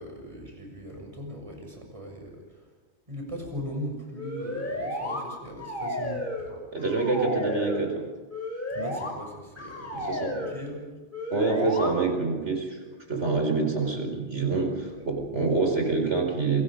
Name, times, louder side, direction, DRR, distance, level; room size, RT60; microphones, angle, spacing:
voice 1, 0.0-2.7 3.1-6.5 8.7-10.8 14.3-15.2, equal, 25° right, 1 dB, 7.0 m, -39 dB
sound 1, 4.2-5.2 5.6-6.5 6.8-7.8 8.3-9.1 9.6-10.6 11.1-11.9, left 1 dB, 45° left, 6.3 m, -33 dB
voice 2, 6.5-8.0 10.1-10.5 11.3-12.8 13.1-14.7 15.1-16.6, right 3 dB, 70° right, 3 dB, 5.0 m, -26 dB
29.0 x 23.5 x 5.2 m, 1.3 s
omnidirectional pair, 1.2 m